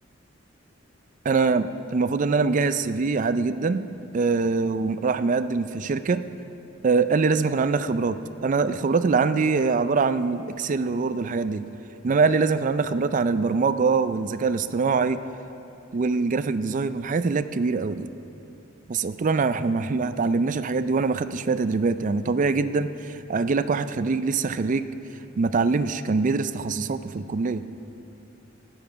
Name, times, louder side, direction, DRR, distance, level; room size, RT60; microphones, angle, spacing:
voice 1, 1.2-3.9 4.1-6.2 6.8-8.2 8.4-11.7 12.0-15.2 15.9-18.1 18.9-24.9 25.4-27.6, right 4 dB, 40° right, 12 dB, 0.4 m, -23 dB
14.5 x 8.8 x 6.0 m, 2.9 s
head